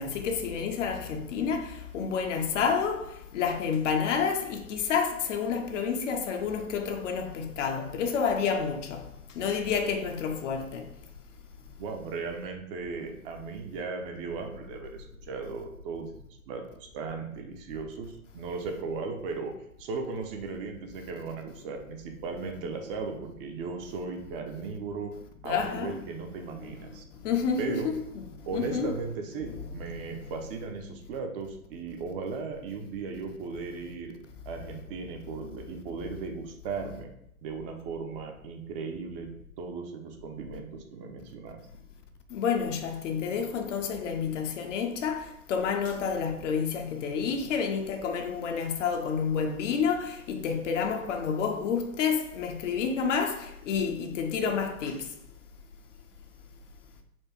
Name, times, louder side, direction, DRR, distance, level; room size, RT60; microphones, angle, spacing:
voice 1, 0.0-9.1 9.3-10.9 25.4-26.0 27.2-28.9 29.4-30.1 42.3-55.1, left 6 dB, 55° left, 0.8 m, -29 dB
voice 2, 11.8-25.1 25.4-27.0 27.6-27.9 28.5-34.1 34.5-37.1 37.4-39.3 39.6-41.6, right 4 dB, 40° right, 0.7 m, -37 dB
4.4 x 2.4 x 4.3 m
hypercardioid pair, 110°, 43 cm